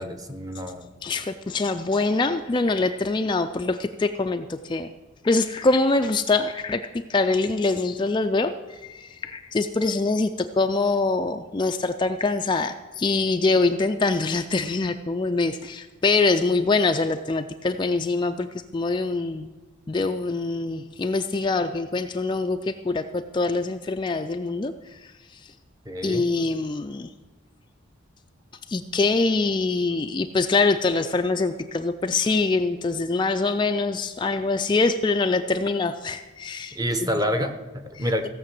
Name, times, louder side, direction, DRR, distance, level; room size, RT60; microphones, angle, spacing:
voice 1, 0.0-0.9 25.9-26.2 36.8-38.3, equal, 15° right, 7 dB, 0.8 m, -28 dB
voice 2, 1.0-4.9 5.2-19.5 19.9-25.5 26.0-27.1 28.7-37.2 38.0-38.3, left 3 dB, 20° left, 6 dB, 0.3 m, -24 dB
16.0 x 6.6 x 7.6 m, 1.2 s
head